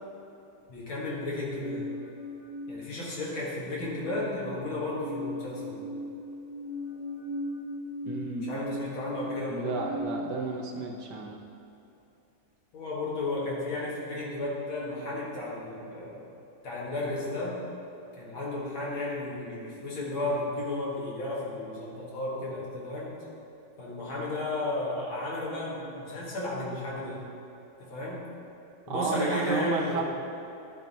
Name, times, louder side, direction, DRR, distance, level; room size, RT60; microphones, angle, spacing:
voice 1, 0.7-1.9 2.7-5.8 8.4-9.7 12.7-16.2 16.6-17.6 18.2-23.1 23.8-27.2 27.8-28.2 28.9-30.0, left 2 dB, 80° left, -5 dB, 2.4 m, -33 dB
sound 1, 1.2-3.3 3.6-10.0, left 1 dB, 25° left, 1.7 m, -39 dB
voice 2, 8.1-8.5 9.5-11.4 28.9-30.0, right 4 dB, 65° right, 1 dB, 1.2 m, -31 dB
11.0 x 4.4 x 4.0 m, 2.8 s
omnidirectional pair, 2.2 m